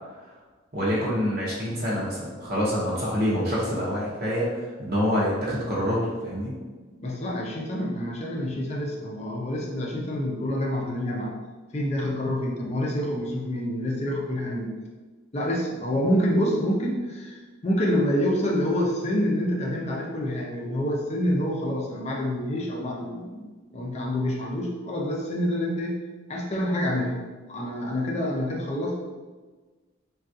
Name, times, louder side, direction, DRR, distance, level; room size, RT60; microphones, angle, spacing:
voice 1, 0.7-6.5, equal, 50° right, -6 dB, 0.7 m, -26 dB
voice 2, 6.9-11.3 11.7-14.7 15.3-23.4 23.7-26.0 26.3-29.0, equal, 30° left, -1 dB, 0.4 m, -27 dB
3.5 x 2.3 x 2.6 m, 1.3 s
head